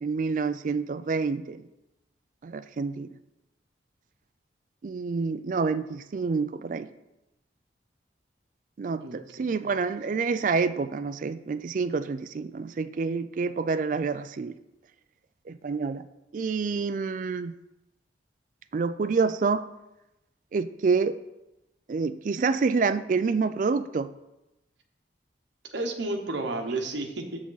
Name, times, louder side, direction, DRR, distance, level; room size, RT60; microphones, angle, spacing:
voice 1, 0.0-1.6 2.4-3.1 4.8-6.9 8.8-14.5 15.5-16.0 16.3-17.5 18.7-19.6 20.5-21.2 21.9-24.1, right 4 dB, 45° right, 12 dB, 0.3 m, -27 dB
voice 2, 9.0-9.5 25.7-27.4, right 2 dB, 80° right, 3 dB, 0.9 m, -32 dB
7.2 x 6.0 x 3.9 m, 0.94 s
head